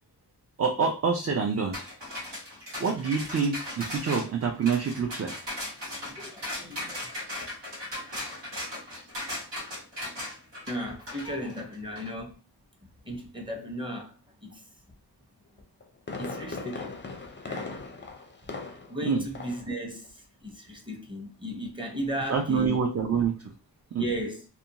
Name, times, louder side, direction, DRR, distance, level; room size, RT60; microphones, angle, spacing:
voice 1, 0.6-1.8 2.8-5.3 19.0-19.3 22.3-23.5 23.9-24.1, right 5 dB, 40° right, 0.4 m, -27 dB
sound 1, 1.7-12.1, left 1 dB, 90° right, 1.1 m, -37 dB
voice 2, 6.0-7.0 10.7-12.4 13.1-14.1 14.4-14.6 16.2-17.0 17.5-17.7 18.9-20.1 20.4-22.8 24.0-24.4, equal, 10° right, 0.8 m, -35 dB
Fireworks, 15.6-19.0 19.3-19.7 20.0-20.1, left 3 dB, 30° left, 0.4 m, -38 dB
2.5 x 2.2 x 2.8 m
wide cardioid pair, 70°, 42 cm